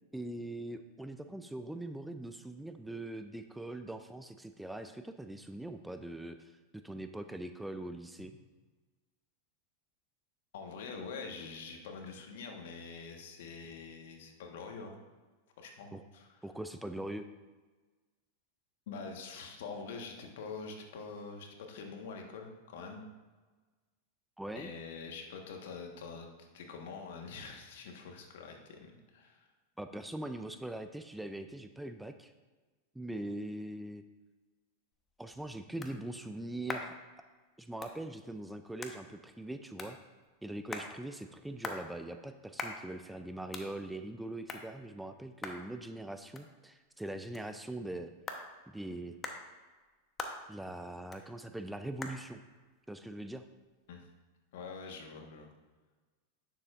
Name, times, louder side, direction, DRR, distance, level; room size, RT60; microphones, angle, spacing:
voice 1, 0.1-8.3 15.9-16.0 16.4-17.3 24.4-24.7 29.8-32.3 32.9-34.0 35.2-36.9 37.6-40.0 40.4-48.1 48.7-49.1 50.5-52.4 52.9-53.4, right 1 dB, 5° right, 8 dB, 0.4 m, -42 dB
voice 2, 10.5-15.0 15.6-16.4 18.9-23.1 24.5-26.3 26.5-29.5 53.9-54.1 54.5-55.5, left 4 dB, 70° left, 3 dB, 1.3 m, -45 dB
sound 1, 34.9-54.2, left 3 dB, 25° left, 0.9 m, -48 dB
9.6 x 6.9 x 2.5 m, 1.3 s
hypercardioid pair, 110°, 0 cm